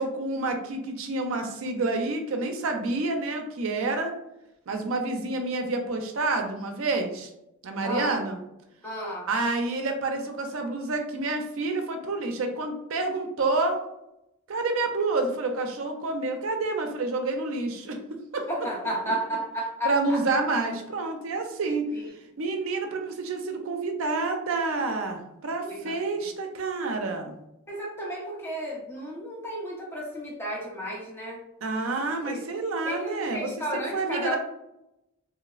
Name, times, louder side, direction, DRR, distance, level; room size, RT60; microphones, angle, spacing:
voice 1, 0.0-4.1 4.7-7.3 7.6-8.4 9.2-13.8 14.5-18.0 18.3-18.5 19.8-21.8 22.4-27.3 31.6-34.4, right 3 dB, 75° right, 4 dB, 0.5 m, -28 dB
voice 2, 7.8-8.1 8.8-9.3 18.5-20.2 21.9-22.0 25.6-25.9 27.7-31.4 32.3-32.4 32.9-34.4, equal, 10° left, -4 dB, 0.7 m, -33 dB
3.0 x 2.0 x 2.3 m, 0.85 s
head